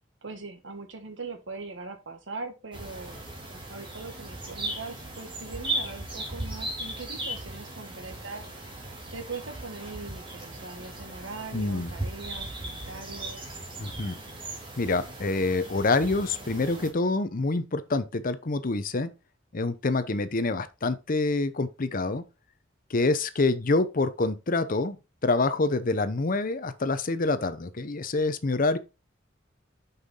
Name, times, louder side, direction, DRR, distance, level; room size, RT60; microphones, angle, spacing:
voice 1, 0.2-3.2 3.7-8.4 9.1-13.4, right 3 dB, 75° right, 1.6 m, -41 dB
sound 1, 2.7-16.9, right 1 dB, 25° right, 2.4 m, -37 dB
voice 2, 11.5-11.9 13.8-14.2 14.8-19.1 19.5-22.2 22.9-28.8, left 3 dB, 45° left, 0.7 m, -26 dB
6.8 x 5.7 x 3.7 m
head